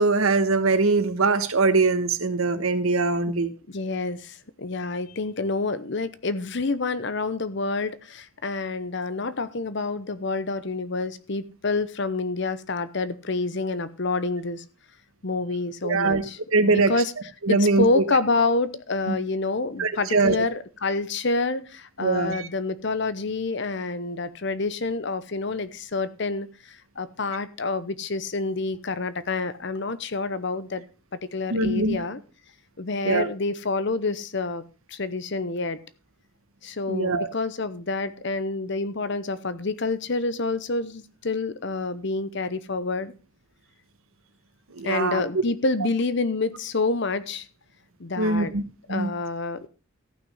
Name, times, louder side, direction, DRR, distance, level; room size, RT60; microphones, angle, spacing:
voice 1, 0.0-3.5 15.8-16.2 16.5-16.9 17.4-18.0 19.1-19.2 19.8-20.4 22.0-22.5 31.5-32.0 33.0-33.3 36.9-37.3 44.7-45.4 48.2-48.6 48.9-49.1, right 3 dB, 85° right, 1.3 m, -22 dB
voice 2, 3.7-14.6 15.2-17.1 17.5-30.8 31.1-32.2 32.8-34.6 34.9-35.8 36.6-43.1 44.8-47.5 48.0-48.5 48.9-49.7, left 3 dB, 55° left, 0.9 m, -28 dB
14.5 x 6.1 x 5.5 m
head